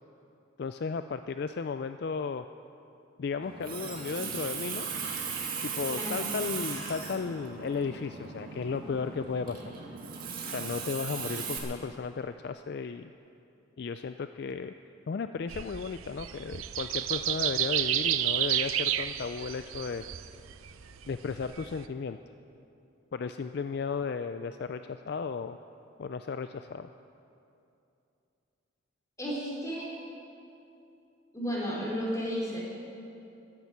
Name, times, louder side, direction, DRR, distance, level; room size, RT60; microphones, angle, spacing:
voice 1, 0.6-2.4 3.2-4.9 5.6-9.6 10.5-13.1 13.8-14.7 15.1-20.0 21.1-22.2 23.1-25.6 26.0-26.9, left 5 dB, 50° left, 9 dB, 0.3 m, -34 dB
Water tap faucet, 3.4-11.6, right 5 dB, 45° right, 2.2 m, -37 dB
voice 2, 5.9-6.3 29.2-29.8 31.3-32.6, equal, 15° left, -5 dB, 4.0 m, -33 dB
sound 1, 15.5-21.8, right 12 dB, 90° right, 0.6 m, -31 dB
14.0 x 11.0 x 8.5 m, 2.7 s
head